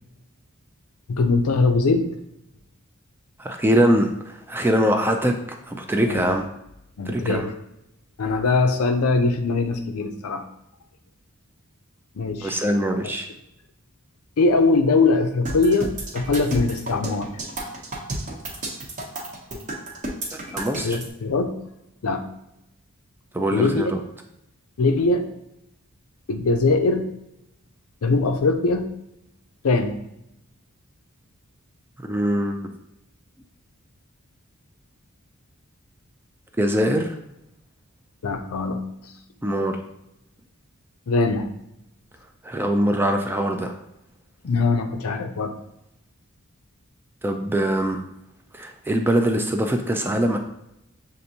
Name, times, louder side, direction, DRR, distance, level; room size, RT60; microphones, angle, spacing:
voice 1, 1.1-2.1 6.1-6.4 7.0-7.5 8.2-10.5 12.2-12.6 14.4-17.3 20.8-21.6 22.0-22.3 23.5-23.9 24.8-25.3 26.3-27.1 28.0-28.9 29.6-30.0 38.2-38.8 41.1-41.5 44.4-45.5, left 3 dB, 75° left, 7 dB, 0.5 m, -21 dB
voice 2, 3.4-6.5 7.1-7.5 12.4-13.3 20.5-21.0 23.3-24.0 32.0-32.7 36.6-37.1 39.4-39.8 42.4-43.7 47.2-48.0 48.5-50.4, right 1 dB, 10° right, 4 dB, 0.3 m, -22 dB
sound 1, 15.4-21.0, right 2 dB, 35° right, 0.8 m, -31 dB
6.5 x 2.6 x 2.8 m, 0.84 s
head